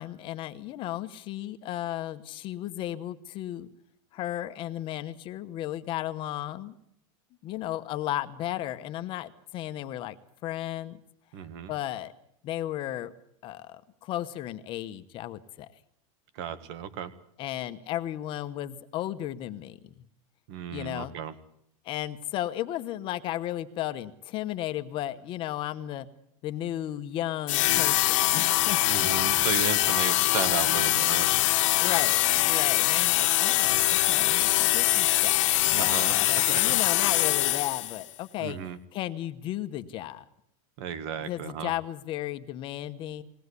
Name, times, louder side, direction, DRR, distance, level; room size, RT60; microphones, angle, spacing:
voice 1, 0.0-3.7 4.1-6.7 7.4-10.2 10.4-11.0 11.7-12.1 12.4-13.1 13.4-15.7 17.4-20.0 20.7-21.1 21.8-26.1 26.4-29.1 31.8-35.5 35.8-38.6 38.9-40.2 41.2-43.2, left 13 dB, 30° left, 10 dB, 1.0 m, -34 dB
voice 2, 11.3-11.7 16.4-17.1 20.5-21.3 28.8-31.3 35.7-36.8 38.4-38.8 40.8-41.7, right 8 dB, 50° right, 13 dB, 1.8 m, -34 dB
sound 1, 27.5-38.0, left 17 dB, 65° left, 1.2 m, -23 dB
21.0 x 18.0 x 8.3 m, 0.72 s
supercardioid pair, 170°, 18 cm